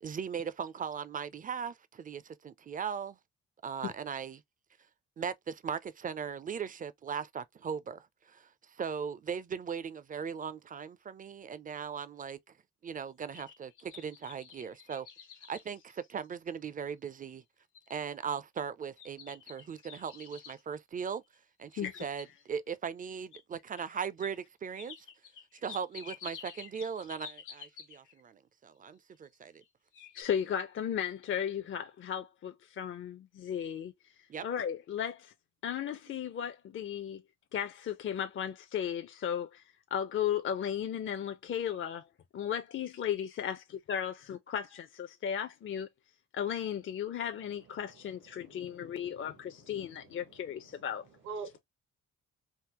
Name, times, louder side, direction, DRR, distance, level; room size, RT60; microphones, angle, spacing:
voice 1, 0.0-3.2 3.6-4.4 5.2-12.4 12.8-15.1 15.5-17.4 17.9-21.2 21.6-25.0 25.5-29.6 34.3-34.5 36.1-36.2, right 7 dB, 30° right, 0.4 m, -39 dB
sound 1, 13.1-16.6 17.2-17.3 17.7-18.1 19.0-20.6 21.6-22.6 23.3-23.4 24.2-24.3 24.8-28.2 29.2-29.7 29.9-30.2, left 7 dB, 85° left, 1.2 m, -50 dB
voice 2, 30.2-35.3 35.6-37.2 37.5-39.6 39.9-42.0 42.3-43.6 43.9-45.9 46.3-51.1, left 9 dB, 45° left, 0.5 m, -35 dB
voice 3, 47.4-50.9 51.2-51.6, right 4 dB, 75° right, 1.1 m, -49 dB
3.6 x 2.0 x 2.9 m
cardioid pair, 90°, 30 cm